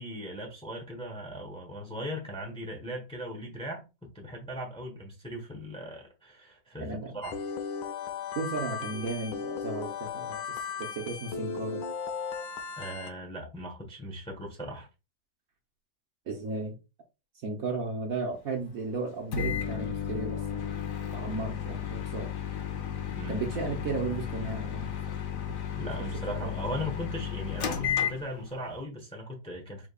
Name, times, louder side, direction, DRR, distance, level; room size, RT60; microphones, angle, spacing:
voice 1, 0.0-3.8 4.1-7.4 12.8-14.9 23.1-23.7 25.7-29.9, equal, 5° left, 0.9 m, -38 dB
voice 2, 6.8-7.1 8.4-11.8 16.3-16.8 17.3-20.7 21.1-22.3 23.3-24.9 25.8-25.9 26.3-26.5, right 3 dB, 60° right, 1.1 m, -35 dB
sound 1, 7.2-13.1, left 6 dB, 85° left, 1.3 m, -36 dB
Microwave oven, 19.3-28.7, left 8 dB, 60° left, 1.0 m, -33 dB
4.9 x 3.6 x 2.3 m
omnidirectional pair, 1.9 m